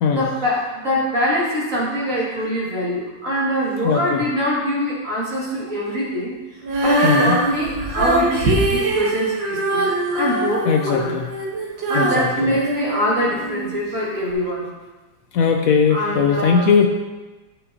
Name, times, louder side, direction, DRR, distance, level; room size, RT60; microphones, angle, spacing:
voice 1, 0.2-11.1 11.9-14.7 15.9-16.7, equal, 45° right, -6 dB, 2.4 m, -24 dB
voice 2, 3.8-4.2 7.0-7.4 8.9-9.0 10.7-11.3 11.9-12.6 15.3-16.9, left 6 dB, 85° left, 4 dB, 0.7 m, -19 dB
Female singing, 6.6-13.7 14.3-14.4, right 2 dB, 80° right, 1.9 m, -22 dB
9.7 x 7.5 x 2.7 m, 1.2 s
omnidirectional pair, 2.1 m